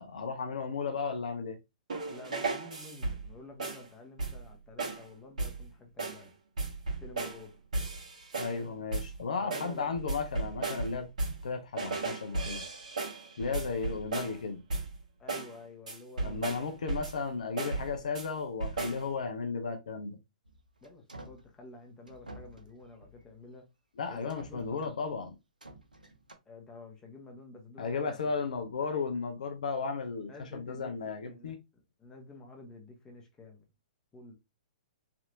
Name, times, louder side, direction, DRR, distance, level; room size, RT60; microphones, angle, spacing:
voice 1, 0.0-1.6 8.3-12.6 13.4-14.6 16.2-20.2 24.0-25.3 27.8-31.6, left 5 dB, 65° left, 0.5 m, -34 dB
sound 1, 1.9-3.3 3.6-3.9 4.2-4.5 4.8-5.1 5.4-5.7 6.0-6.3 6.6-7.4 7.7-8.6 8.9-9.2 9.5-11.5 11.8-14.4 14.7-15.0 15.3-15.6 15.9-17.2 17.6-18.3 18.6-19.1, right 3 dB, 65° right, 1.3 m, -35 dB
voice 2, 2.1-6.3 7.0-7.6 8.4-8.8 9.4-9.9 15.2-16.8 20.8-23.7 24.1-25.0 26.5-28.3 30.2-30.9 31.2-33.6 34.1-34.3, left 2 dB, 15° left, 0.9 m, -50 dB
sound 2, 20.4-21.5 22.1-23.3 24.1-25.0 25.6-26.3, right 1 dB, 85° right, 0.6 m, -51 dB
3.3 x 2.7 x 2.6 m
figure-of-eight pair, 115°, 4 cm